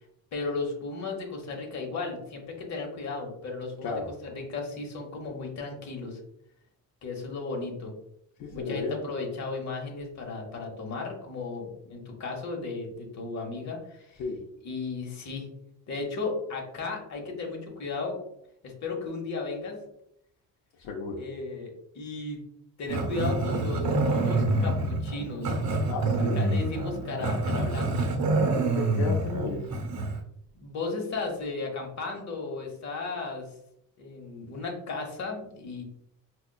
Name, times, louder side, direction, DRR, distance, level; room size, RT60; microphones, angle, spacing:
voice 1, 0.3-6.2 7.0-7.9 8.5-14.2 14.6-15.5 15.9-18.2 18.6-19.8 21.2-22.4 22.8-25.5 26.4-28.1 30.5-33.4 34.0-35.8, left 3 dB, 50° left, 1 dB, 0.9 m, -35 dB
voice 2, 8.4-9.0 14.2-14.4 20.8-21.2 25.9-26.4 28.5-29.6, left 4 dB, 80° left, 0 dB, 0.6 m, -33 dB
Growling, 22.9-30.2, right 2 dB, 55° right, 0.7 m, -27 dB
4.9 x 2.3 x 2.2 m, 0.75 s
cardioid pair, 125°, 35 cm